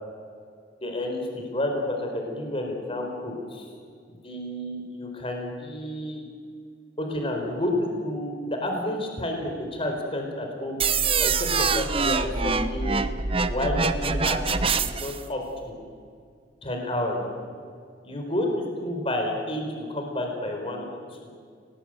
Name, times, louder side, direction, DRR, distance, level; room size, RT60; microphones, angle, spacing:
voice 1, 0.8-3.7 4.1-6.2 7.0-10.8 11.2-13.0 13.5-15.8 16.6-17.2 18.0-21.0, left 1 dB, 30° left, 2 dB, 4.5 m, -30 dB
sound 1, 10.8-15.2, right 4 dB, 30° right, 1.0 m, -25 dB
26.0 x 19.5 x 9.1 m, 2.2 s
head